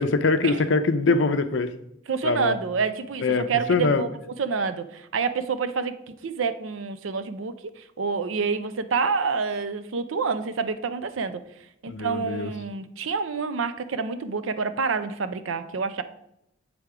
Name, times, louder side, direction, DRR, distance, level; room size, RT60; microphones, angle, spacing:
voice 1, 0.0-1.7 2.2-2.6 3.2-4.0 11.9-12.5, left 3 dB, 75° left, 9 dB, 0.5 m, -23 dB
voice 2, 2.1-11.4 11.8-16.0, right 5 dB, 90° right, 12 dB, 0.5 m, -28 dB
8.1 x 3.5 x 4.8 m, 0.80 s
head